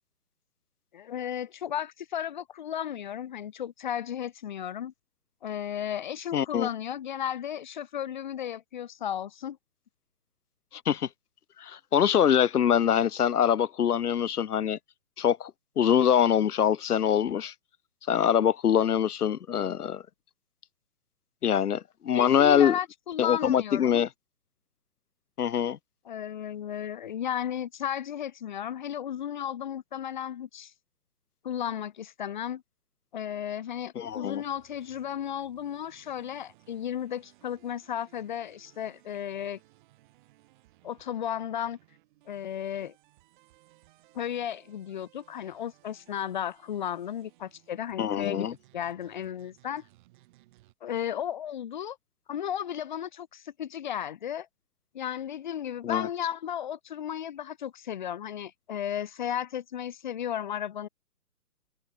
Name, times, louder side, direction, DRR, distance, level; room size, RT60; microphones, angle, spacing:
voice 1, 0.9-4.9 5.4-9.6 22.1-24.0 26.1-30.7 31.4-32.6 33.1-39.6 40.8-41.8 42.3-42.9 44.1-48.5 48.7-49.8 50.8-52.0 52.3-54.5 54.9-60.9, left 10 dB, 30° left, 0.7 m, -34 dB
voice 2, 6.3-6.7 10.9-11.1 11.6-14.8 15.2-15.5 15.8-17.5 18.1-20.0 21.4-22.8 23.2-24.1 25.4-25.8 34.0-34.4 48.0-48.5 55.8-56.1, left 9 dB, 75° left, 0.9 m, -24 dB
sound 1, 34.0-50.7, right 18 dB, 30° right, 7.4 m, -62 dB
hypercardioid pair, 145°, 46 cm